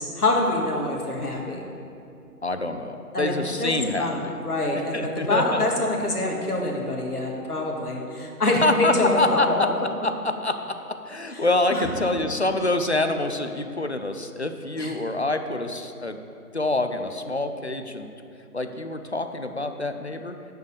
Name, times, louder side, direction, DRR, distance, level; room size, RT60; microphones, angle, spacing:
voice 1, 0.0-1.6 3.1-9.6 11.3-12.1 14.8-15.0, left 2 dB, 70° left, -1 dB, 1.8 m, -26 dB
voice 2, 2.4-4.3 4.9-5.6 8.6-9.7 10.0-10.1 10.4-10.6 11.1-16.2 16.5-18.1 18.5-20.3, left 2 dB, 45° left, 7 dB, 0.5 m, -26 dB
6.9 x 6.4 x 6.8 m, 2.6 s
figure-of-eight pair, 160°, 47 cm